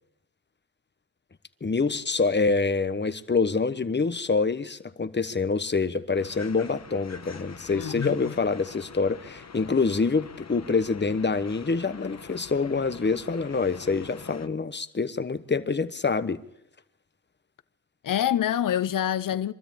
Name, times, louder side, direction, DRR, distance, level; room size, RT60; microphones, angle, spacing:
voice 1, 1.6-16.4, left 4 dB, 30° left, 1.2 m, -26 dB
sound 1, 6.1-14.5, left 5 dB, 45° left, 1.2 m, -45 dB
voice 2, 7.7-8.1 18.0-19.5, left 10 dB, 65° left, 0.8 m, -26 dB
23.5 x 13.0 x 8.7 m
cardioid pair, 60°, 35 cm